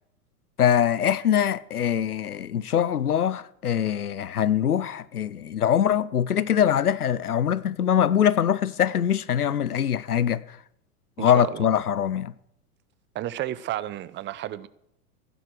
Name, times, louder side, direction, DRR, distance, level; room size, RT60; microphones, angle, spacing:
voice 1, 0.6-10.6 11.2-12.3, left 9 dB, 85° left, 0.8 m, -23 dB
voice 2, 11.2-11.7 13.1-14.7, right 13 dB, 25° right, 0.7 m, -32 dB
15.5 x 11.0 x 6.2 m
figure-of-eight pair, 95°, 44 cm